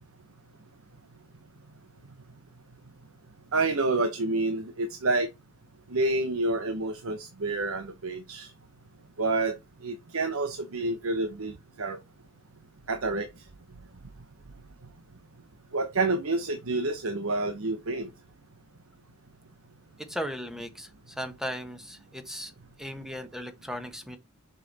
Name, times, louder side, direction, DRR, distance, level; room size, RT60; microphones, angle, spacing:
voice 1, 3.5-5.3 5.9-8.5 9.2-9.6 9.8-12.0 12.9-13.3 15.7-18.1, right 2 dB, 85° right, 1.0 m, -28 dB
voice 2, 20.0-22.5 22.8-24.2, equal, ahead, 1.3 m, -37 dB
6.8 x 5.7 x 4.1 m
head